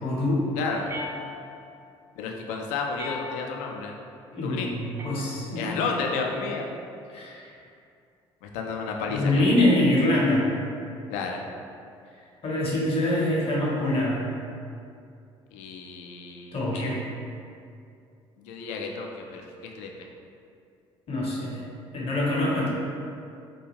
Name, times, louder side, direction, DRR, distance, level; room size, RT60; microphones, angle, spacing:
voice 1, 0.0-0.5 4.3-5.8 7.1-7.5 9.1-10.5 12.4-14.3 16.5-17.0 21.1-21.6 21.9-22.7, left 1 dB, 45° left, -4 dB, 0.8 m, -24 dB
voice 2, 0.6-0.9 2.2-3.9 4.4-4.8 5.5-6.7 8.4-9.4 11.1-11.4 15.5-17.0 18.4-19.9, left 4 dB, 60° left, 1 dB, 0.4 m, -32 dB
sound 1, 0.9-1.8 3.0-3.8 5.0-5.8, left 3 dB, 20° right, 0.4 m, -39 dB
2.3 x 2.2 x 3.2 m, 2.5 s
figure-of-eight pair, 50°, 14 cm